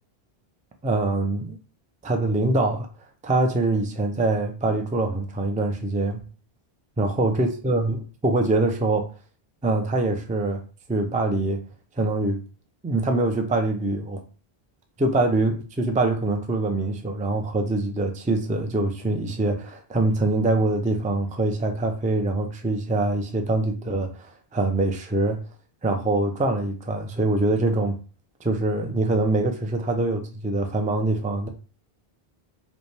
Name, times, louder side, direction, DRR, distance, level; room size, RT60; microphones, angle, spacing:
voice 1, 0.8-1.6 2.0-2.9 3.2-6.2 7.0-9.1 9.6-10.6 10.9-11.6 12.0-12.4 12.8-14.2 15.0-25.4 25.8-28.0 28.4-31.5, right 2 dB, 15° right, 0.3 m, -24 dB
5.2 x 2.2 x 3.3 m
omnidirectional pair, 1.0 m